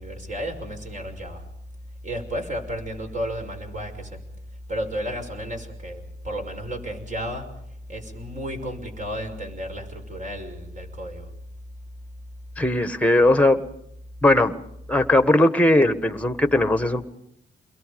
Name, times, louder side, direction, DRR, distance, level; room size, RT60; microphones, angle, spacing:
voice 1, 0.0-1.4 2.0-4.3 4.7-7.5 7.9-11.3, equal, 40° right, 5 dB, 5.8 m, -32 dB
voice 2, 12.6-13.6 14.2-14.5 14.9-17.0, left 1 dB, 5° left, 10 dB, 1.5 m, -18 dB
29.5 x 22.0 x 5.3 m, 0.76 s
cardioid pair, 90°, 20 cm